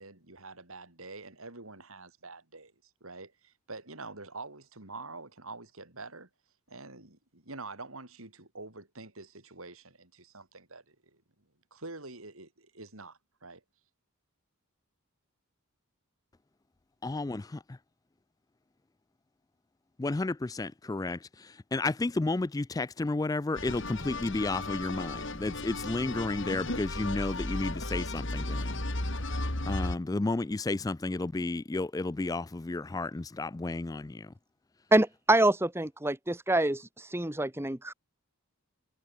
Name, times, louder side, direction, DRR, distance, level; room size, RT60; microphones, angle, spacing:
voice 1, 0.0-2.7 3.0-6.3 6.7-11.2 11.7-13.6, right 3 dB, 70° right, 4.9 m, -46 dB
voice 2, 17.0-17.4 20.0-28.8 29.3-34.3, left 2 dB, 15° left, 0.3 m, -32 dB
sound 1, 23.6-30.0, left 2 dB, 60° left, 3.7 m, -35 dB
voice 3, 34.9-37.9, right 1 dB, 10° right, 1.2 m, -26 dB
head